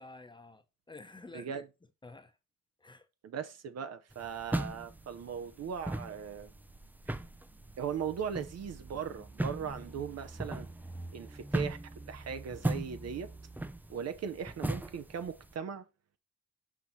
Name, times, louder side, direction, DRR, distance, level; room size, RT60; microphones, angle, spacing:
voice 1, 0.0-1.6 2.0-2.4 2.8-3.1, left 3 dB, 15° left, 0.8 m, -51 dB
voice 2, 1.3-1.6 3.2-6.5 7.8-10.7 11.1-11.8 12.1-13.3 13.9-15.8, right 7 dB, 55° right, 0.8 m, -38 dB
sound 1, 4.1-15.5, right 1 dB, 5° right, 0.4 m, -39 dB
6.0 x 4.7 x 4.1 m
cardioid pair, 90°, 30 cm